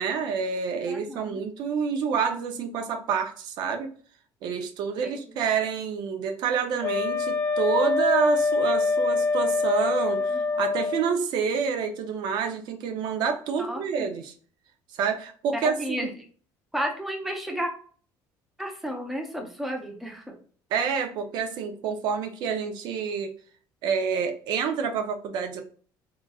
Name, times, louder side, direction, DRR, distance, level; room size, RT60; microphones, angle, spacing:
voice 1, 0.0-3.9 4.4-14.3 15.0-16.1 20.7-23.3 23.8-25.6, right 6 dB, 60° right, 6 dB, 0.6 m, -28 dB
voice 2, 0.9-1.5 5.0-5.4 10.3-10.6 13.6-14.1 15.5-16.1 16.7-17.7 18.6-20.4, equal, ahead, 1 dB, 0.7 m, -33 dB
Wind instrument woodwind instrument, 6.8-11.1, left 3 dB, 25° left, 0.4 m, -25 dB
3.6 x 2.9 x 2.3 m, 0.44 s
cardioid pair, 150°, 8 cm